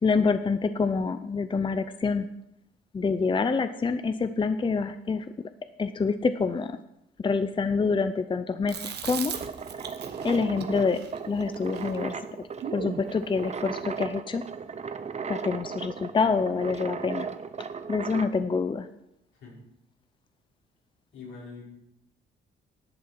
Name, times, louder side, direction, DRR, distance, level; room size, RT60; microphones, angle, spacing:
voice 1, 0.0-2.3 2.9-5.3 5.8-6.8 7.2-9.3 10.2-12.3 12.7-14.5 15.3-17.3 17.9-18.9, left 4 dB, 25° left, 11 dB, 0.6 m, -26 dB
Chewing mastication, 8.7-13.1, right 7 dB, 55° right, 1.2 m, -38 dB
sound 1, 9.3-18.4, right 5 dB, 35° right, 0.8 m, -37 dB
voice 2, 21.1-21.6, left 4 dB, 80° left, -5 dB, 5.6 m, -43 dB
11.0 x 8.4 x 6.1 m, 0.84 s
cardioid pair, 90°, 20 cm